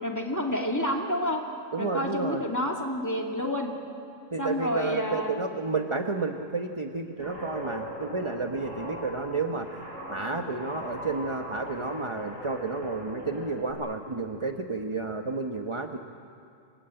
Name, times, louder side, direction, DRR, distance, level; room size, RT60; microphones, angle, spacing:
voice 1, 0.0-1.4 1.8-3.7 4.4-5.3, left 1 dB, 15° left, 0 dB, 2.6 m, -29 dB
voice 2, 1.7-2.4 4.3-9.7 10.1-16.0, right 3 dB, 25° right, 4 dB, 1.1 m, -31 dB
Guitar, 7.2-13.7, equal, 85° left, 7.9 m, -40 dB
27.5 x 21.5 x 9.0 m, 2.4 s
omnidirectional pair, 1.3 m